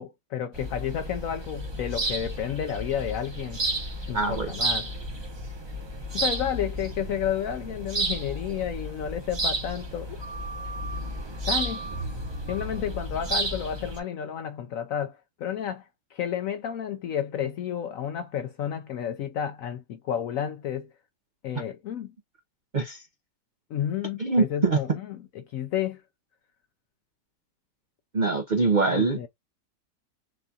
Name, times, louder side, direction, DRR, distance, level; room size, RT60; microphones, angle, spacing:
voice 1, 0.0-3.6 4.1-4.9 6.1-10.2 11.5-11.9 12.5-15.8 16.1-20.9 21.4-22.1 23.7-26.0 28.9-29.3, left 9 dB, 75° left, 0.8 m, -31 dB
sound 1, 0.5-14.0, right 2 dB, 25° right, 0.6 m, -32 dB
voice 2, 4.1-4.5 22.7-23.0 24.2-24.8 28.1-29.3, right 3 dB, 70° right, 0.4 m, -23 dB
6.4 x 2.3 x 2.7 m
omnidirectional pair, 1.9 m